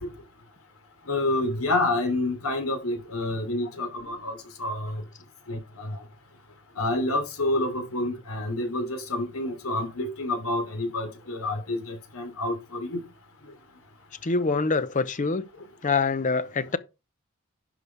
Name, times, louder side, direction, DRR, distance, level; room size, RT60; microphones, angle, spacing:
voice 1, 1.1-5.0 5.5-6.0 6.8-13.0, left 2 dB, 80° left, 3.2 m, -28 dB
voice 2, 14.2-15.5 15.8-16.8, left 4 dB, 35° left, 0.6 m, -25 dB
11.0 x 5.5 x 4.7 m
head